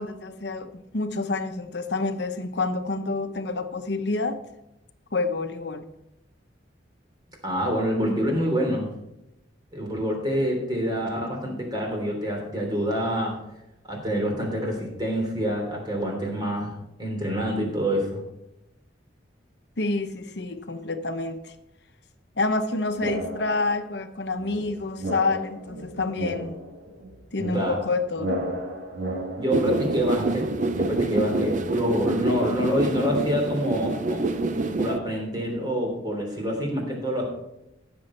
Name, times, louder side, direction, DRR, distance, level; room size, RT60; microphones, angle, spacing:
voice 1, 0.0-4.4 5.1-5.9 19.8-21.5 22.4-26.6 27.3-28.4, left 3 dB, 65° left, 8 dB, 0.9 m, -28 dB
voice 2, 7.4-8.9 9.7-13.4 13.9-16.7 17.0-18.2 27.5-27.8 29.4-30.5 30.8-34.2 34.8-37.2, equal, 25° right, 1 dB, 3.1 m, -26 dB
sound 1, 23.0-23.8 24.4-31.7, right 1 dB, 85° right, 2.0 m, -34 dB
sound 2, 29.5-35.0, right 2 dB, 45° right, 0.7 m, -27 dB
15.0 x 7.1 x 4.4 m, 0.86 s
head